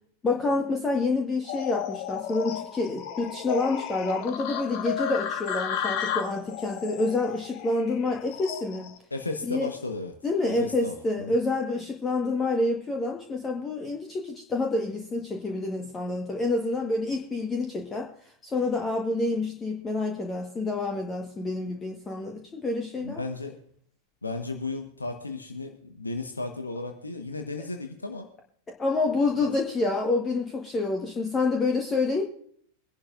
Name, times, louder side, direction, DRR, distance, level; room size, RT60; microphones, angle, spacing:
voice 1, 0.2-8.9 9.5-9.7 10.2-18.1 18.4-23.2 28.8-32.2, left 3 dB, 20° left, 1 dB, 1.3 m, -28 dB
sound 1, 1.4-9.0, left 8 dB, 45° left, 1.4 m, -33 dB
voice 2, 9.1-10.1 10.4-11.4 23.0-23.5 24.2-28.3 29.4-29.5, left 3 dB, 80° left, 5 dB, 1.0 m, -34 dB
23.0 x 11.0 x 2.5 m, 0.62 s
figure-of-eight pair, 90°, 0 cm